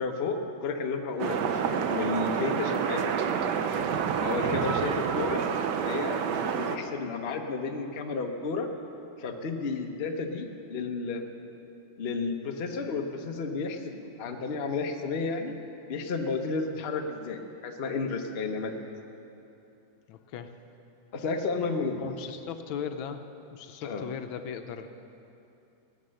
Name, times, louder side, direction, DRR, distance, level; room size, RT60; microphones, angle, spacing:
voice 1, 0.0-1.5 1.9-3.1 4.2-5.4 5.8-8.7 9.2-11.3 12.0-15.5 15.9-18.7 21.1-22.1 23.8-24.0, left 4 dB, 45° left, 4 dB, 0.8 m, -32 dB
sound 1, 1.2-6.8, right 7 dB, 65° right, 1.2 m, -28 dB
voice 2, 20.1-20.5 22.0-23.2 23.5-24.9, left 7 dB, 75° left, 8 dB, 1.4 m, -37 dB
18.0 x 8.9 x 6.4 m, 2.9 s
omnidirectional pair, 2.2 m